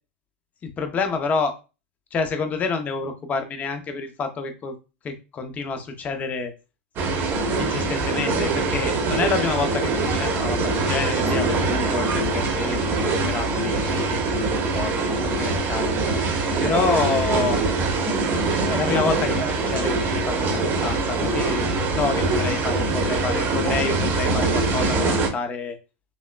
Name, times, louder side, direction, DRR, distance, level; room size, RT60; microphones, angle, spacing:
voice 1, 0.6-1.6 2.1-4.7 5.0-6.5 7.6-14.5 14.7-15.9 16.6-17.6 18.7-25.8, left 4 dB, 25° left, 7 dB, 0.7 m, -28 dB
sound 1, 7.0-25.3, right 3 dB, 35° right, 1.0 m, -23 dB
6.0 x 2.1 x 2.3 m, 0.29 s
hypercardioid pair, 125°, 6 cm